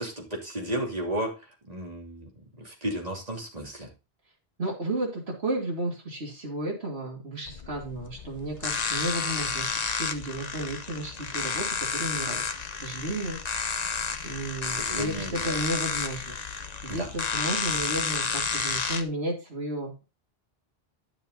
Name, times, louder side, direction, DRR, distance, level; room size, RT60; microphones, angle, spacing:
voice 1, 0.0-2.3 2.6-3.9 14.7-15.6 16.9-17.1, right 1 dB, 40° right, 0 dB, 3.1 m, -33 dB
voice 2, 4.6-11.7 11.9-12.4 12.8-13.8 14.2-16.4 16.8-20.0, right 1 dB, 80° right, -2 dB, 3.0 m, -33 dB
sound 1, 7.4-19.0, left 5 dB, 40° left, 1.0 m, -31 dB
10.5 x 6.9 x 3.9 m, 0.28 s
omnidirectional pair, 1.1 m